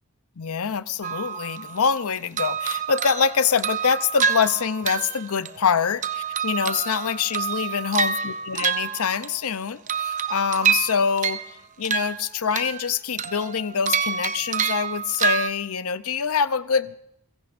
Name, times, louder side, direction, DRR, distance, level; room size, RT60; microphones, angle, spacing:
voice 1, 0.4-11.4 11.8-17.0, left 6 dB, 70° left, 14 dB, 0.7 m, -25 dB
sound 1, 1.0-2.0 2.4-5.7 6.0-9.5 9.9-11.5 11.9-12.9 13.2-15.5, right 6 dB, 35° right, 0.7 m, -27 dB
30.0 x 16.5 x 2.6 m, 0.73 s
head